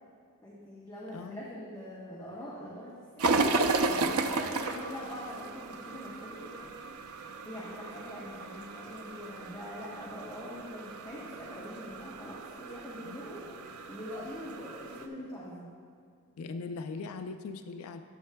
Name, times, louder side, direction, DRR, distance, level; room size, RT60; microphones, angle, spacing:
voice 1, 0.4-3.4 3.9-6.7 7.1-15.7, left 1 dB, 15° left, -7 dB, 1.0 m, -43 dB
sound 1, 3.2-15.1, right 3 dB, 90° right, 0.5 m, -34 dB
voice 2, 16.4-18.0, left 4 dB, 80° left, 8 dB, 0.4 m, -40 dB
12.5 x 7.8 x 2.2 m, 2.3 s
head